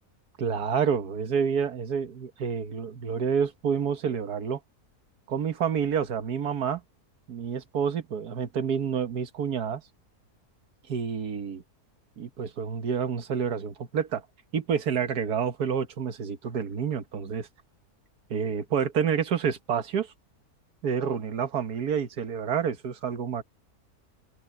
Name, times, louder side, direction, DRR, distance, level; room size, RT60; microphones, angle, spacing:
voice 1, 0.4-4.6 5.3-6.8 7.3-9.8 10.9-11.6 12.2-14.2 14.5-17.5 18.3-20.1 20.8-23.4, right 7 dB, 80° right, 1.8 m, -28 dB
open air
omnidirectional pair, 1.6 m